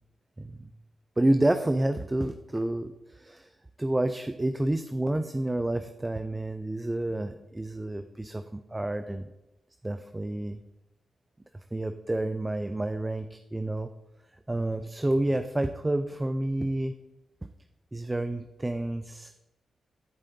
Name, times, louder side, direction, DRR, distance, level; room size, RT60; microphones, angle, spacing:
voice 1, 0.4-0.7 1.2-3.5 3.8-9.3 9.8-10.6 11.7-13.9 14.5-16.9 17.9-19.4, right 1 dB, 20° right, 9 dB, 0.5 m, -29 dB
14.5 x 4.9 x 2.8 m, 0.99 s
supercardioid pair, 50°, 0 cm